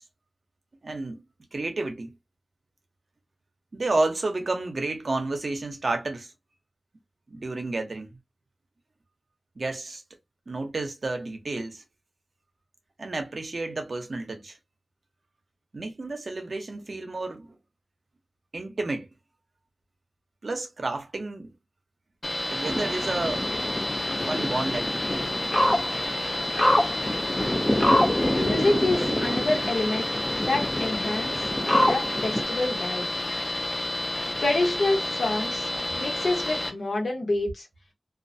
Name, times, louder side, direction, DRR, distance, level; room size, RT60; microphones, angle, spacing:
voice 1, 0.8-1.2 1.5-2.1 3.7-6.3 7.3-8.2 9.6-10.0 10.5-11.8 13.0-14.6 15.7-17.5 18.5-19.1 20.4-21.5 22.5-23.5 24.3-25.2, right 2 dB, 65° right, 0.7 m, -31 dB
sound 1, 22.2-36.7, left 1 dB, 50° left, 0.9 m, -30 dB
sound 2, 22.6-32.4, left 1 dB, 15° left, 0.5 m, -26 dB
voice 2, 28.3-30.1 30.4-31.5 31.8-33.1 34.4-37.7, left 2 dB, 80° left, 1.0 m, -27 dB
2.3 x 2.1 x 2.6 m
wide cardioid pair, 55°, 0 cm